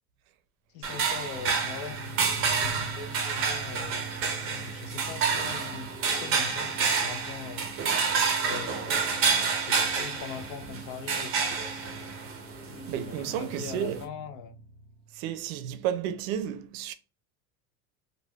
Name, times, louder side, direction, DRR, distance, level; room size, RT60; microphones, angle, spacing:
voice 1, 0.7-4.2 4.6-7.7 8.4-12.3 13.1-14.6, left 7 dB, 65° left, 0.6 m, -42 dB
sound 1, 0.8-14.0, right 5 dB, 35° right, 0.5 m, -29 dB
sound 2, 0.9-15.5, right 2 dB, 20° left, 0.6 m, -46 dB
voice 2, 12.9-14.0 15.2-16.9, right 10 dB, 80° right, 0.5 m, -32 dB
3.3 x 2.2 x 2.2 m
supercardioid pair, 135°, 41 cm